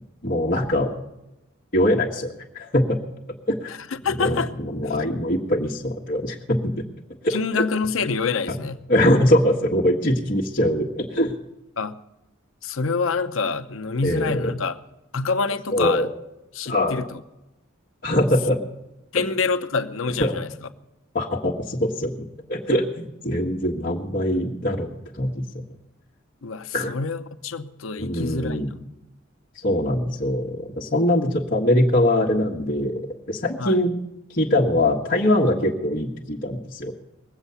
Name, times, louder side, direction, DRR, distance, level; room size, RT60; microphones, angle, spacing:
voice 1, 0.2-0.9 1.7-3.0 3.5-3.7 4.2-6.8 7.2-7.7 8.5-8.6 8.9-11.3 14.0-14.5 15.7-16.1 16.6-17.0 18.0-18.6 19.1-19.3 20.2-20.3 21.1-22.2 22.5-25.6 26.7-26.9 28.0-28.7 29.6-33.0 33.3-33.9 34.3-36.9, left 1 dB, 45° left, -5 dB, 1.5 m, -22 dB
voice 2, 3.7-4.5 4.8-5.0 7.3-8.8 11.8-12.0 12.6-14.8 15.1-16.1 16.5-17.2 19.1-20.5 26.4-28.6 33.6-33.8, left 4 dB, 80° left, 8 dB, 0.8 m, -26 dB
20.5 x 8.1 x 7.0 m, 0.94 s
head